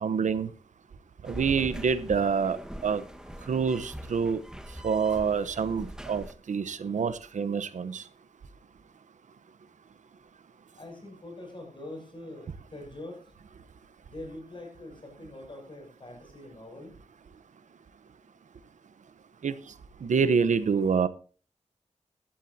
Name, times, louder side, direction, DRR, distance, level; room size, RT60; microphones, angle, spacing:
voice 1, 0.0-0.5 1.3-2.6 2.8-3.0 3.5-4.4 4.8-8.0 19.4-19.5 20.0-21.1, right 6 dB, 85° right, 0.9 m, -26 dB
sound 1, 1.2-6.3, equal, 5° right, 1.4 m, -42 dB
voice 2, 10.8-13.3 14.0-16.9, left 1 dB, 40° left, 7.4 m, -44 dB
16.5 x 13.0 x 2.8 m
wide cardioid pair, 75°, 12 cm